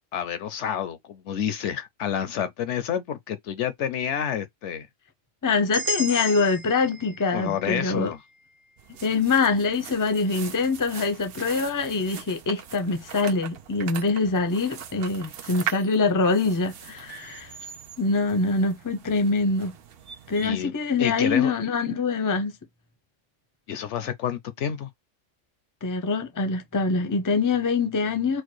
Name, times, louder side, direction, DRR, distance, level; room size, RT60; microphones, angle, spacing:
voice 1, 0.1-4.9 6.1-6.3 7.3-8.2 20.4-20.7 21.0-21.5 23.7-24.9, left 9 dB, 70° left, 0.9 m, -29 dB
voice 2, 5.4-8.1 9.0-17.5 18.0-19.7 20.3-22.5 25.8-28.4, left 4 dB, 20° left, 0.6 m, -24 dB
sound 1, 5.7-9.8, left 1 dB, 90° right, 1.5 m, -35 dB
sound 2, 8.8-20.5, right 9 dB, 60° right, 0.7 m, -40 dB
4.5 x 2.2 x 4.5 m
omnidirectional pair, 1.3 m